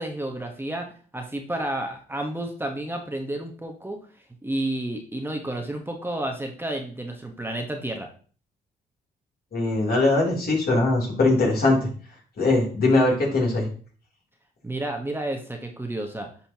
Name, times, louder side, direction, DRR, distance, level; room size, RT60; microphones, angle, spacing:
voice 1, 0.0-4.0 4.4-8.1 14.6-16.3, right 1 dB, 10° right, 3 dB, 1.2 m, -31 dB
voice 2, 9.5-11.9 12.4-13.7, left 2 dB, 55° left, -2 dB, 3.3 m, -21 dB
10.0 x 4.3 x 2.9 m, 0.42 s
supercardioid pair, 60°, 18 cm